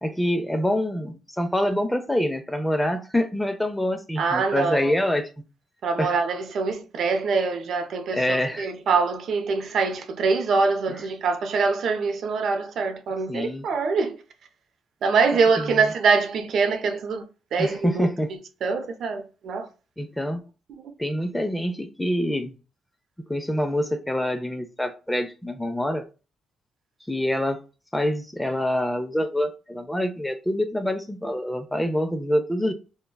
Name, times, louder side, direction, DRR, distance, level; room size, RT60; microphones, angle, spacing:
voice 1, 0.0-5.3 6.0-6.2 8.1-8.7 13.3-13.7 15.6-15.9 17.6-18.3 20.0-20.4 21.0-22.5 23.3-26.1 27.1-27.6 27.9-32.7, left 1 dB, 10° left, 0.6 m, -26 dB
voice 2, 4.2-4.9 5.8-14.2 15.0-17.2 17.5-18.1 18.6-19.7, right 4 dB, 65° right, 0.5 m, -24 dB
3.1 x 2.2 x 2.2 m
supercardioid pair, 50°, 0 cm